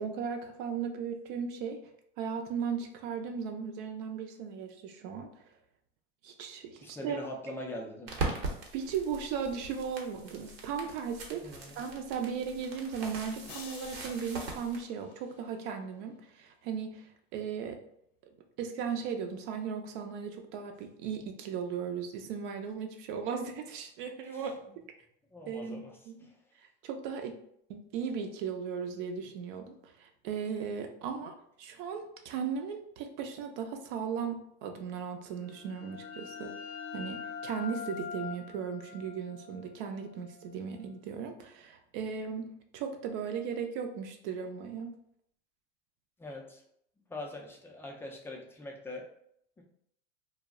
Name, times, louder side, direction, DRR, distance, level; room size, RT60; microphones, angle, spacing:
voice 1, 0.0-1.8 2.2-5.3 6.2-7.2 8.7-17.8 18.6-24.8 25.5-26.3 26.8-27.4 27.7-36.6 36.9-44.9, right 6 dB, 55° right, 5 dB, 0.5 m, -37 dB
voice 2, 6.8-8.2 11.4-11.8 24.2-24.5 25.3-26.4 46.2-46.6 47.1-49.1 49.6-49.7, left 1 dB, 10° left, 0 dB, 0.3 m, -42 dB
sound 1, 8.1-14.8, right 3 dB, 80° right, 0.9 m, -40 dB
sound 2, 13.5-15.8, left 5 dB, 50° left, 0.6 m, -51 dB
sound 3, 35.4-40.8, left 6 dB, 90° left, 0.5 m, -44 dB
2.2 x 2.0 x 3.5 m, 0.70 s
supercardioid pair, 120°, 30 cm